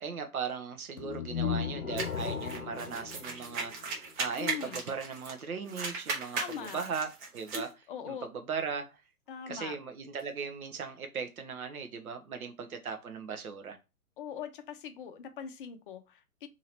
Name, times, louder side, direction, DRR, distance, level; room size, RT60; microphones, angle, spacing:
voice 1, 0.0-3.7 4.2-8.9 9.5-13.8, right 6 dB, 70° right, 0.9 m, -38 dB
sound 1, 1.0-4.1, left 7 dB, 70° left, 0.8 m, -36 dB
sound 2, 2.0-5.4 5.7-7.7, right 4 dB, 35° right, 1.0 m, -37 dB
sound 3, 3.9-4.5 5.4-10.3 10.7-10.8, left 2 dB, 5° right, 0.9 m, -52 dB
voice 2, 4.4-4.8 6.3-6.9 7.9-8.3 9.3-9.8 14.2-16.5, left 8 dB, 35° left, 0.5 m, -41 dB
2.9 x 2.9 x 4.1 m
figure-of-eight pair, 120°, 45 cm